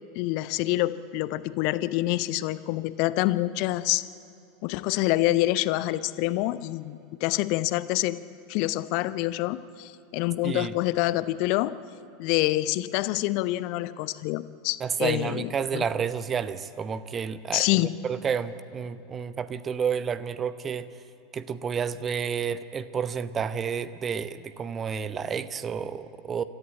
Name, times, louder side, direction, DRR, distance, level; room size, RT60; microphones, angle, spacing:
voice 1, 0.2-4.0 4.6-8.2 8.5-11.7 12.2-15.8 17.5-17.9, left 17 dB, 50° left, 16 dB, 0.6 m, -26 dB
voice 2, 14.8-20.9 21.3-26.4, right 7 dB, 25° right, 14 dB, 0.8 m, -30 dB
27.0 x 14.0 x 8.6 m, 2.7 s
figure-of-eight pair, 80°, 0 cm